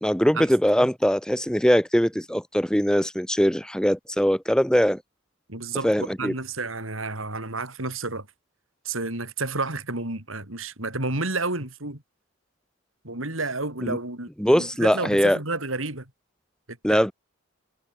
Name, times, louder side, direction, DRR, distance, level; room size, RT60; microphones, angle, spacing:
voice 1, 0.0-5.0 5.8-6.3 13.8-14.0 14.4-15.4 16.8-17.1, equal, 5° left, 2.9 m, -21 dB
voice 2, 5.5-8.3 8.8-12.0 13.0-16.1 16.7-17.1, right 3 dB, 85° right, 6.3 m, -31 dB
head